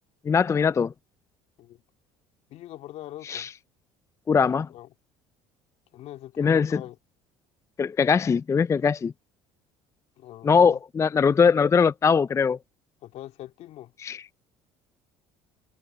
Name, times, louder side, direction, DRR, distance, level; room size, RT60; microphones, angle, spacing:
voice 1, 0.3-0.9 3.3-3.5 4.3-4.7 6.4-6.8 7.8-9.1 10.4-12.6 14.0-14.2, left 6 dB, 25° left, 0.4 m, -21 dB
voice 2, 2.5-3.5 4.7-4.9 5.9-7.0 10.2-10.8 13.0-13.9, left 14 dB, 65° left, 2.8 m, -42 dB
supercardioid pair, 80°, 12 cm